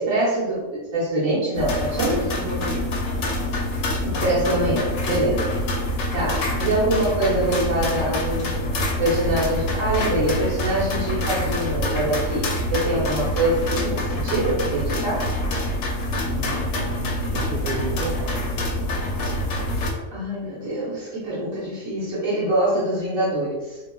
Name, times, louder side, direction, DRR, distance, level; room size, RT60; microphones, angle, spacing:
voice 1, 0.0-2.2 4.0-5.6 6.1-8.7 9.0-15.3 20.1-23.8, right 1 dB, 80° right, -9 dB, 1.4 m, -24 dB
sound 1, 1.5-19.9, left 1 dB, 75° left, 1.0 m, -26 dB
voice 2, 2.0-2.9 16.3-18.5, right 2 dB, 60° right, 2 dB, 0.6 m, -32 dB
4.0 x 3.2 x 2.2 m, 1.1 s
omnidirectional pair, 1.4 m